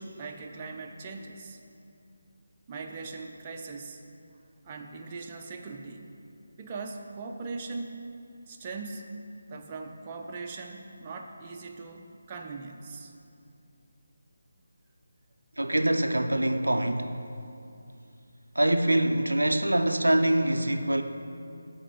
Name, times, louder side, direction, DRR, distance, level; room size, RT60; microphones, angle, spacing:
voice 1, 0.0-1.6 2.7-4.0 4.6-6.0 6.6-8.0 8.5-9.1 9.5-13.1, right 4 dB, 25° right, 2 dB, 0.5 m, -40 dB
voice 2, 15.6-17.1 18.6-21.0, right 1 dB, 85° right, 7 dB, 0.4 m, -24 dB
7.4 x 4.3 x 5.1 m, 2.5 s
figure-of-eight pair, 155°, 0 cm